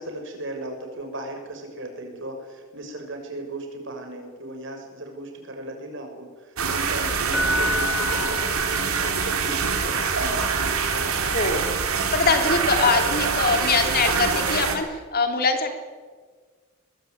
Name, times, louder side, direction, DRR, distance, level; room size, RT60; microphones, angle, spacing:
voice 1, 0.0-11.2 12.4-12.6, right 1 dB, 60° right, 4 dB, 6.4 m, -36 dB
sound 1, 6.6-14.8, right 5 dB, 80° right, 3.5 m, -25 dB
Keyboard (musical), 7.3-9.3 12.5-12.7, left 2 dB, 5° right, 2.8 m, -28 dB
voice 2, 11.3-15.7, left 3 dB, 45° left, 5 dB, 3.3 m, -23 dB
23.0 x 21.5 x 9.5 m, 1.5 s
head